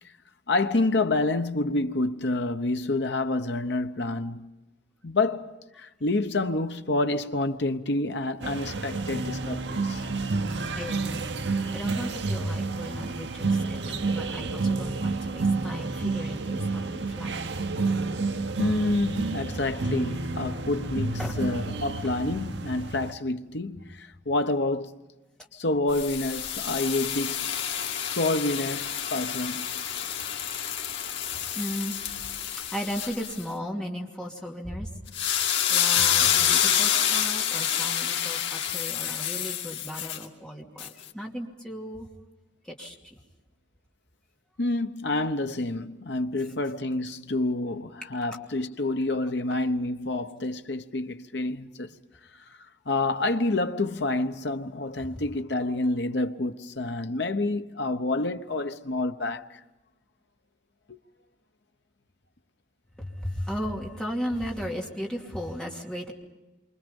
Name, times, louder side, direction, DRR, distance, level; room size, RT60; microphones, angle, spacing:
voice 1, 0.5-4.5 5.0-10.3 11.8-11.9 18.6-25.0 25.5-27.5 28.0-29.8 44.6-51.9 52.9-59.6 60.9-61.0, left 2 dB, 65° left, 1.0 m, -28 dB
sound 1, 8.4-23.1, right 3 dB, 70° right, 1.0 m, -30 dB
voice 2, 10.8-17.5 19.4-19.6 21.2-21.4 30.2-30.4 31.3-32.1 32.6-34.9 35.7-42.1 42.6-43.2 55.0-55.2 63.0-66.1, equal, 5° left, 2.7 m, -36 dB
sound 2, 25.9-33.4 35.1-40.2 40.8-40.9, left 9 dB, 85° left, 2.2 m, -28 dB
27.5 x 25.0 x 5.4 m
head